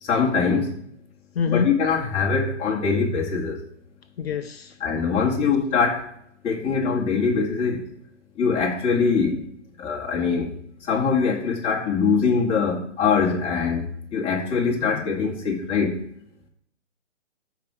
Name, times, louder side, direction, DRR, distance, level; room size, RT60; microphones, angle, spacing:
voice 1, 0.0-0.7 1.5-3.6 4.8-6.0 6.4-7.8 8.4-9.4 9.8-10.5 10.8-13.8 14.1-16.0, left 5 dB, 15° left, -2 dB, 2.2 m, -23 dB
voice 2, 1.4-1.7 4.2-4.8 5.4-5.6 14.8-15.0, left 6 dB, 55° left, 8 dB, 0.7 m, -26 dB
14.0 x 5.0 x 4.5 m, 0.66 s
hypercardioid pair, 140°, 36 cm